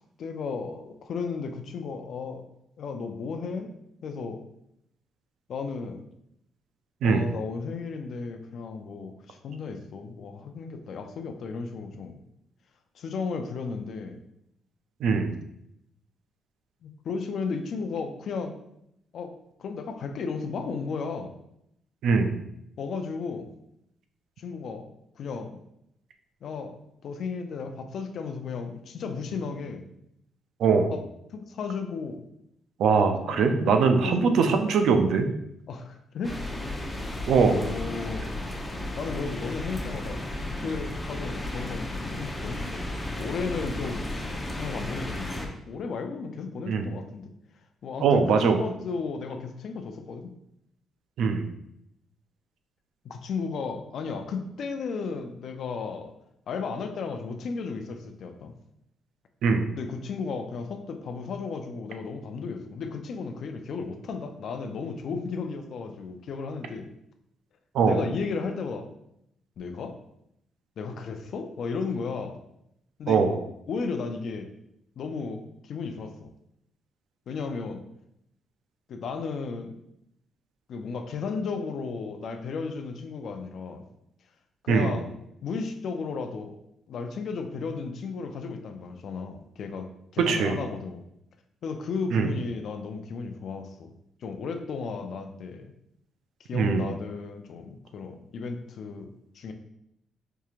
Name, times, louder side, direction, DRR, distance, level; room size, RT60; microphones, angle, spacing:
voice 1, 0.2-2.4 2.8-3.7 4.0-4.4 5.5-6.0 7.0-12.2 12.9-14.2 16.8-18.6 19.1-19.3 19.6-21.3 22.8-23.5 24.4-24.9 25.2-25.6 26.4-26.8 27.0-29.8 30.9-31.0 31.3-32.2 33.3-34.6 35.7-36.4 37.5-38.3 39.0-40.2 40.6-47.3 47.8-50.3 53.0-56.1 56.5-58.5 59.7-66.9 67.8-68.9 69.6-70.0 70.8-72.4 73.0-73.2 73.7-74.5 75.0-76.3 77.3-77.8 78.9-79.8 80.7-83.8 84.6-85.1 85.4-86.6 86.9-91.0 91.6-93.9 94.2-95.7 96.4-99.5, left 4 dB, 65° left, 6 dB, 0.4 m, -34 dB
voice 2, 15.0-15.3 22.0-22.3 30.6-30.9 32.8-35.3 37.3-37.6 46.7-46.8 48.0-48.6 51.2-51.4 59.4-59.7 67.7-68.0 73.1-73.4 84.7-84.9 90.2-90.6 92.1-92.3 96.5-96.8, right 5 dB, 75° right, 6 dB, 0.4 m, -22 dB
sound 1, 36.2-45.5, left 1 dB, 15° left, 0.6 m, -34 dB
4.6 x 2.8 x 2.4 m, 0.78 s
cardioid pair, 90°, 0 cm